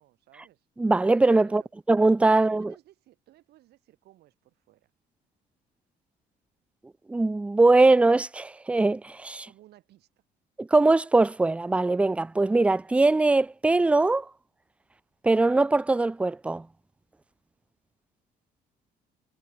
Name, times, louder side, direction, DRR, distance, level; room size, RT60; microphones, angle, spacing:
voice 1, 0.0-0.7 1.4-1.7 2.3-4.9 9.4-10.1, right 15 dB, 75° right, 3.8 m, -57 dB
voice 2, 0.8-1.6 1.9-2.7 7.1-9.5 10.6-14.3 15.2-16.7, right 2 dB, 5° right, 0.3 m, -21 dB
cardioid pair, 110°, 17 cm